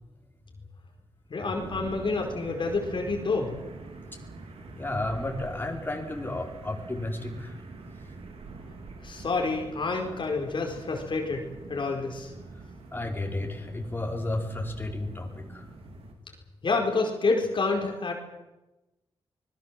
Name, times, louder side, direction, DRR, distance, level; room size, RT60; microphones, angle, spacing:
voice 1, 1.3-3.5 9.0-11.4 11.7-12.3 16.6-18.1, left 3 dB, 55° left, 2 dB, 4.7 m, -28 dB
sound 1, 1.5-16.1, right 3 dB, 80° right, 4.2 m, -45 dB
voice 2, 4.8-7.5 12.9-15.6, left 2 dB, 20° left, 1 dB, 4.9 m, -32 dB
25.5 x 21.0 x 7.6 m, 1.0 s
wide cardioid pair, 95°, 10 cm